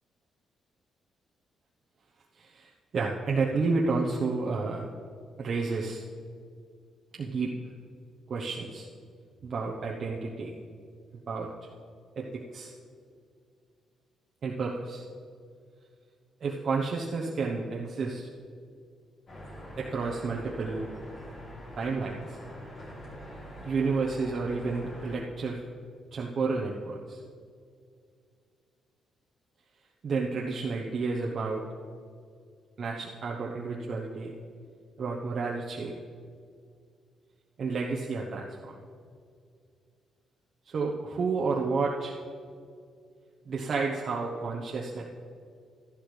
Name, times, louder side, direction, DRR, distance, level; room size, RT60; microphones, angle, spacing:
voice 1, 2.3-4.9 5.4-6.0 7.2-7.5 8.3-8.9 9.4-10.5 11.3-11.5 12.2-12.7 14.4-15.0 16.4-18.3 19.8-20.9 21.8-22.4 23.6-25.6 26.1-27.2 30.0-31.6 32.8-34.3 35.0-36.0 37.6-38.7 40.6-42.1 43.4-45.0, right 4 dB, 55° right, -3 dB, 1.0 m, -31 dB
sound 1, 19.3-25.2, equal, 50° left, 3.4 m, -44 dB
13.0 x 12.0 x 3.3 m, 2.2 s
cardioid pair, 90°, 0 cm